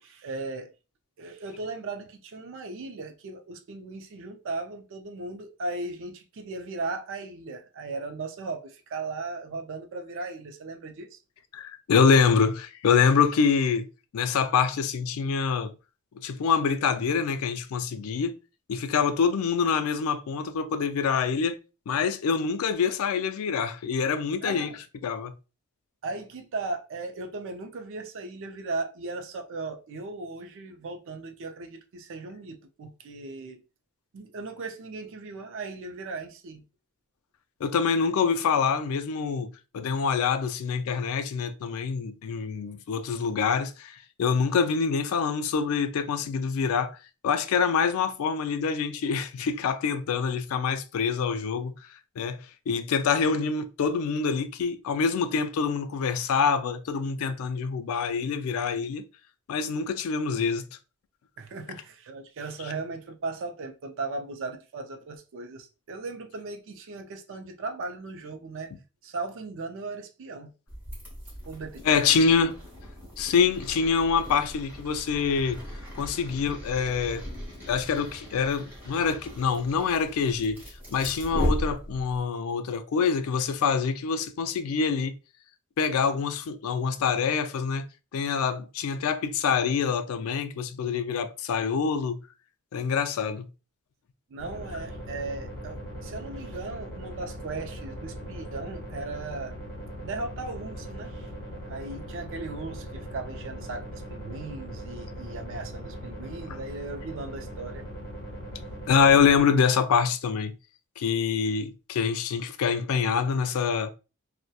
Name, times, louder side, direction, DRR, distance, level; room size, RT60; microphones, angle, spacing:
voice 1, 0.0-0.7 1.2-11.2 24.4-24.7 26.0-33.6 34.1-36.6 61.4-68.7 69.0-70.5 71.5-72.0 94.3-99.6 100.0-101.3 101.6-107.8, right 3 dB, 60° right, 0.4 m, -37 dB
voice 2, 11.5-13.9 14.1-15.7 16.1-18.4 18.7-21.6 21.9-24.7 25.0-25.3 37.6-47.0 47.2-51.7 52.2-52.4 52.7-59.0 59.5-60.7 71.8-72.6 73.2-75.6 75.9-77.2 77.7-80.6 80.9-85.1 85.8-87.9 88.1-92.2 92.7-93.5 108.9-110.6 111.0-113.9, left 6 dB, 70° left, 0.3 m, -25 dB
sound 1, 70.7-82.3, equal, 10° right, 1.2 m, -37 dB
sound 2, 94.4-109.4, equal, 50° left, 0.9 m, -40 dB
2.7 x 2.1 x 2.2 m
head